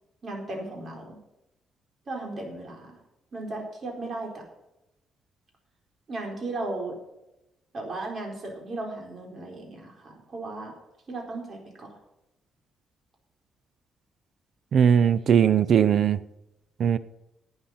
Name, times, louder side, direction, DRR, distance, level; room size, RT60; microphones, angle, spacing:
voice 1, 0.2-1.2 2.1-3.0 3.3-4.4 6.1-7.0 7.7-10.7 11.1-12.0, right 2 dB, 40° right, 1 dB, 4.3 m, -36 dB
voice 2, 14.7-16.2 16.8-17.0, right 8 dB, 60° right, 16 dB, 0.5 m, -19 dB
12.0 x 8.8 x 5.7 m, 0.89 s
cardioid pair, 125°, 0 cm